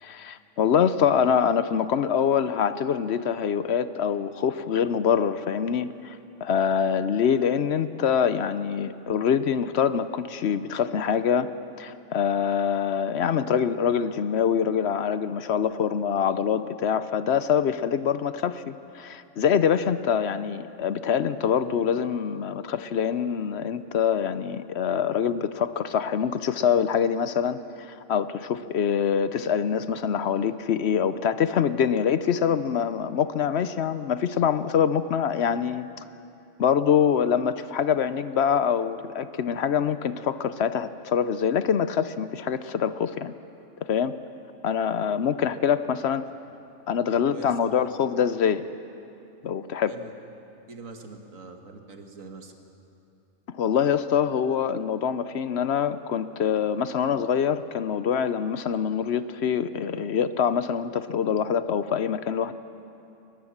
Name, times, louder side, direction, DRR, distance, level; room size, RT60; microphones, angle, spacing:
voice 1, 0.0-11.5 11.8-35.9 36.6-43.3 43.9-44.1 44.6-46.2 46.9-48.7 49.4-49.9 53.5-62.5, left 7 dB, 60° left, 13 dB, 0.9 m, -25 dB
voice 2, 47.3-47.8 49.9-50.1 50.7-52.5, right 4 dB, 85° right, 4 dB, 2.1 m, -44 dB
22.0 x 20.0 x 7.3 m, 2.8 s
omnidirectional pair, 1.3 m